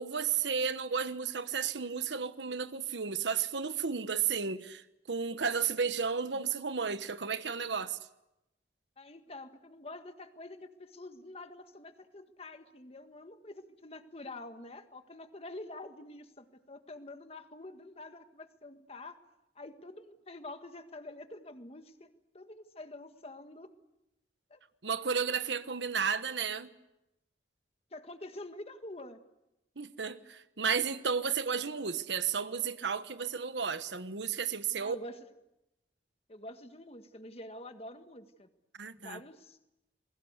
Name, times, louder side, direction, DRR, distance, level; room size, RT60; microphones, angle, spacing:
voice 1, 0.0-4.8 5.1-8.0 24.8-26.7 29.8-34.9 38.8-39.2, right 6 dB, 85° right, 1.2 m, -33 dB
voice 2, 9.0-19.2 19.5-22.1 22.3-23.7 24.5-24.6 27.9-29.2 34.7-35.4 36.3-38.5 39.0-39.6, left 2 dB, 35° left, 1.7 m, -47 dB
28.5 x 21.5 x 8.2 m
head